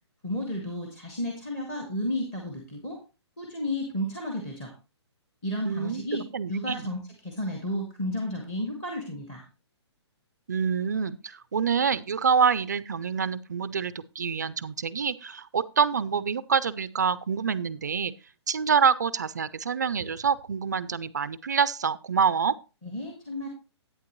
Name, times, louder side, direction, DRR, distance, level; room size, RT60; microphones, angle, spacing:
voice 1, 0.2-3.0 3.4-4.7 5.4-9.4 22.8-23.5, left 1 dB, 10° left, 1 dB, 1.4 m, -32 dB
voice 2, 5.6-6.8 10.5-18.1 18.5-22.5, right 6 dB, 40° right, 16 dB, 0.4 m, -26 dB
10.5 x 9.0 x 3.0 m, 0.30 s
hypercardioid pair, 180°, 15 cm